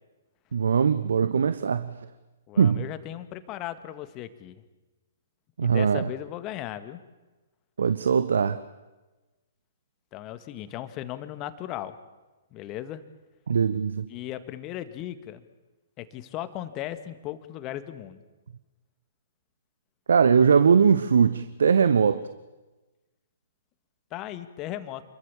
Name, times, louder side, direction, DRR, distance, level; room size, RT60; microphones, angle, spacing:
voice 1, 0.5-2.1 2.6-2.9 5.6-6.1 7.8-8.6 13.5-14.1 20.1-22.3, right 6 dB, 60° right, 14 dB, 1.1 m, -21 dB
voice 2, 2.5-4.6 5.6-7.0 10.1-12.0 12.5-13.0 14.1-15.4 16.0-18.2 24.1-25.0, left 12 dB, 25° left, 11 dB, 1.9 m, -37 dB
29.0 x 22.5 x 7.3 m, 1.1 s
figure-of-eight pair, 120°, 0 cm